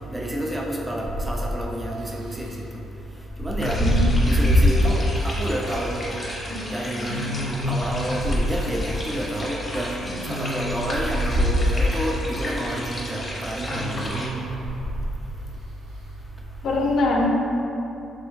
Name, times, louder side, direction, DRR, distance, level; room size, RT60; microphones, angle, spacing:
voice 1, 0.1-2.6 3.4-3.8 4.3-6.1 6.7-7.3 7.7-10.0 10.2-14.2, right 1 dB, 15° right, -2 dB, 0.4 m, -29 dB
sound 1, 1.0-1.5 3.3-4.9 5.6-5.7 7.0-8.6 10.0-11.9 13.7-15.2, equal, 85° right, 0.4 m, -23 dB
sound 2, 3.6-14.3, left 1 dB, 30° left, 0.7 m, -34 dB
voice 2, 3.8-4.3 6.5-7.3 16.6-17.3, left 2 dB, 70° left, 0 dB, 0.4 m, -25 dB
3.4 x 2.2 x 3.0 m, 2.7 s
cardioid pair, 90°, 0 cm